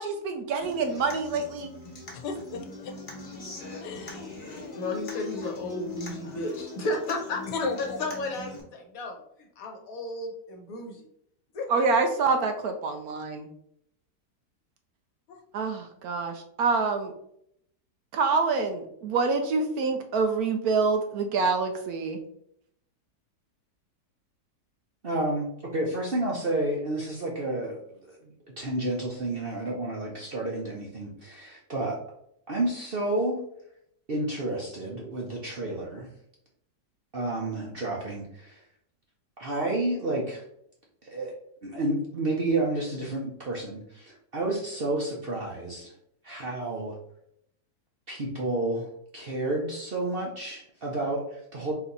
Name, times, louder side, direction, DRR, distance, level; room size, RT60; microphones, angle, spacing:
voice 1, 0.0-1.7 11.7-13.5 15.5-17.1 18.1-22.2, right 4 dB, 70° right, 6 dB, 1.0 m, -26 dB
Human voice / Acoustic guitar, 0.6-8.6, left 4 dB, 35° left, 1.0 m, -41 dB
voice 2, 2.1-2.9 3.8-5.0 7.5-8.0 15.3-15.4, left 4 dB, 85° left, 5 dB, 1.4 m, -36 dB
voice 3, 4.7-9.2 9.6-11.1 11.5-11.7, left 1 dB, 60° left, 2 dB, 1.3 m, -33 dB
voice 4, 25.0-32.0 32.5-33.4 34.1-36.1 37.1-38.6 39.4-40.4 41.0-41.3 41.6-45.9 46.2-47.0 48.1-48.9 49.1-51.7, right 2 dB, 50° right, -2 dB, 0.7 m, -30 dB
4.1 x 2.9 x 4.0 m, 0.72 s
omnidirectional pair, 1.8 m